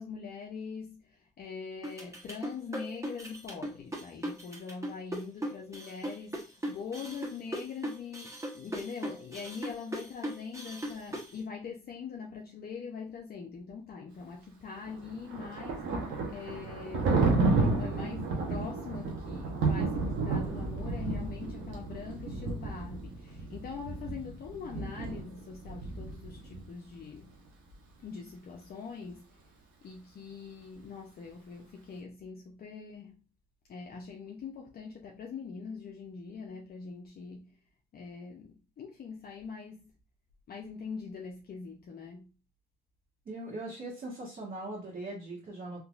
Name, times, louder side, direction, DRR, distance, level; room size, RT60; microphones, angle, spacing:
voice 1, 0.0-27.3 28.0-29.3 29.8-33.2 33.7-37.6 37.9-39.9 40.5-42.3, left 5 dB, 50° left, 0.6 m, -43 dB
sound 1, 1.8-11.3, right 1 dB, 15° right, 1.1 m, -38 dB
Thunder, 14.9-26.7, right 3 dB, 85° right, 0.9 m, -32 dB
voice 2, 43.2-45.8, right 2 dB, 45° right, 1.5 m, -40 dB
3.6 x 2.8 x 2.4 m
cardioid pair, 90°, 20 cm